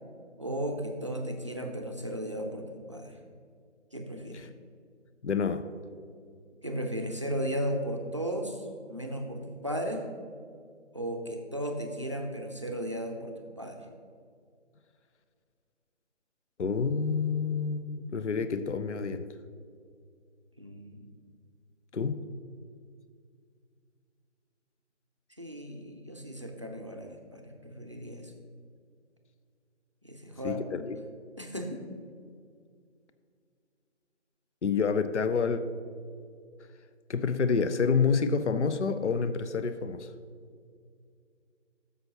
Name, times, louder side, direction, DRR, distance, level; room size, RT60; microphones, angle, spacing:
voice 1, 0.4-3.2 3.9-4.5 6.6-10.1 10.9-13.9 20.6-21.1 25.4-28.3 30.0-30.9 31.4-31.8, equal, 25° right, 3 dB, 0.5 m, -35 dB
voice 2, 5.2-5.6 16.6-19.3 21.9-22.2 30.4-31.0 34.6-35.6 37.1-40.1, left 5 dB, 70° left, 11 dB, 0.6 m, -28 dB
12.5 x 6.9 x 2.9 m, 2.2 s
figure-of-eight pair, 155°, 36 cm